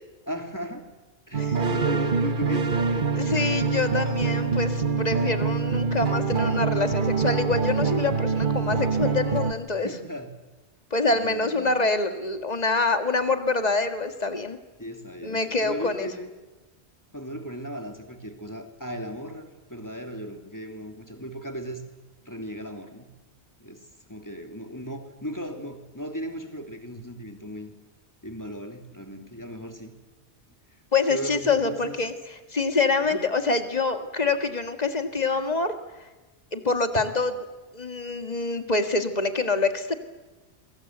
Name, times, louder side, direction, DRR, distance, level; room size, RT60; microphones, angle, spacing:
voice 1, 0.3-0.9 1.3-3.2 9.8-10.3 11.1-11.8 14.8-16.3 17.1-21.8 22.2-23.1 23.6-27.7 28.2-29.9 31.1-32.0 33.0-33.2, equal, 15° left, 4 dB, 3.1 m, -37 dB
sound 1, 1.3-9.5, right 5 dB, 50° right, 1.3 m, -25 dB
voice 2, 3.2-9.9 10.9-14.6 15.2-16.1 30.9-35.7 36.5-37.4 37.7-40.0, left 3 dB, 35° left, 7 dB, 2.0 m, -26 dB
28.5 x 23.0 x 8.1 m, 1.2 s
omnidirectional pair, 1.2 m